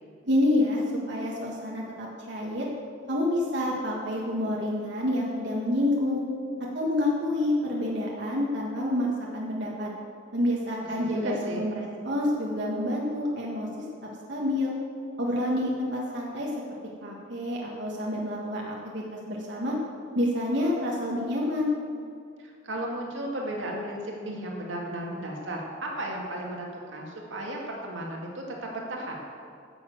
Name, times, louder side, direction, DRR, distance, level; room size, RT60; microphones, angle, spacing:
voice 1, 0.3-0.8 1.1-2.7 3.1-6.2 6.7-9.1 9.3-9.9 10.3-13.7 14.3-14.7 15.2-16.5 17.0-19.7 20.1-21.8, left 1 dB, 65° right, -3 dB, 1.6 m, -28 dB
voice 2, 11.0-11.6 22.4-29.2, right 1 dB, 80° right, -1 dB, 2.1 m, -35 dB
11.0 x 7.0 x 7.8 m, 2.3 s
head